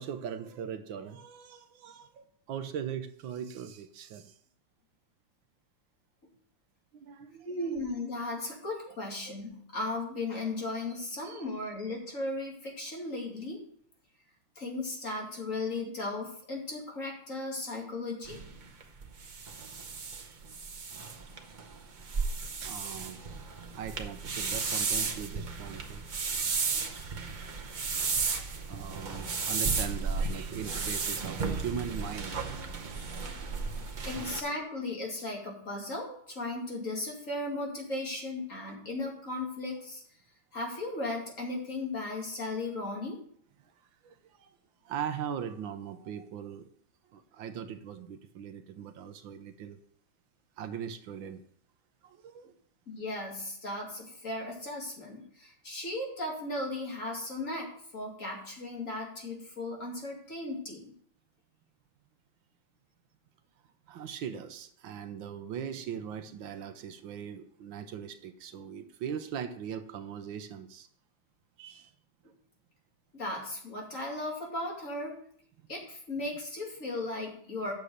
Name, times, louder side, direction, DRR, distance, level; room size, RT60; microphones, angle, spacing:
voice 1, 0.0-4.4 6.9-7.5 11.2-11.4 21.9-23.2 23.7-26.3 28.7-33.3 34.1-34.2 43.6-44.5 44.8-46.7 47.1-49.8 50.6-51.4 52.0-52.6 63.9-70.9 71.6-71.9 72.2-72.3, right 8 dB, 75° right, 9 dB, 1.5 m, -40 dB
voice 2, 7.4-13.6 14.6-18.4 34.1-40.0 40.5-43.2 52.9-57.7 57.9-60.8 73.1-75.2 75.7-77.7, left 2 dB, 40° left, -1 dB, 2.7 m, -36 dB
sound 1, 18.2-34.4, right 4 dB, 45° right, 0.6 m, -34 dB
8.8 x 6.6 x 6.4 m, 0.63 s
omnidirectional pair, 2.2 m